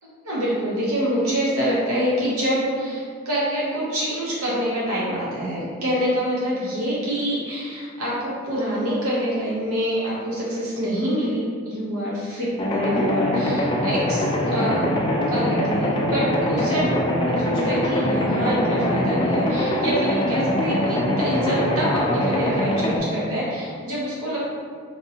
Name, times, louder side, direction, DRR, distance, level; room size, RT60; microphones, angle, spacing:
voice 1, 0.0-16.9 17.3-24.5, equal, 75° right, -7 dB, 0.8 m, -26 dB
sound 1, 12.6-23.0, left 1 dB, 20° left, 0.3 m, -23 dB
4.3 x 2.6 x 2.8 m, 2.1 s
head